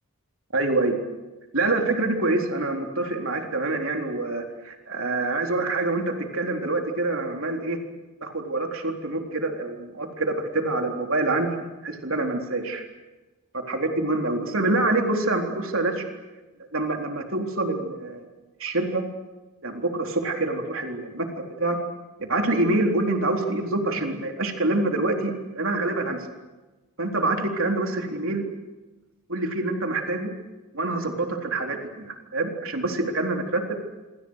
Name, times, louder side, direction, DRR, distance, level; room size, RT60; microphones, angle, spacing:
voice 1, 0.5-1.0 1.5-7.8 8.2-12.8 13.7-16.0 16.7-18.3 18.6-19.0 19.6-21.3 21.6-21.8 22.2-26.3 27.0-28.4 29.3-30.3 30.7-33.8, right 2 dB, 60° right, 3 dB, 3.9 m, -26 dB
27.0 x 26.5 x 6.6 m, 1.2 s
head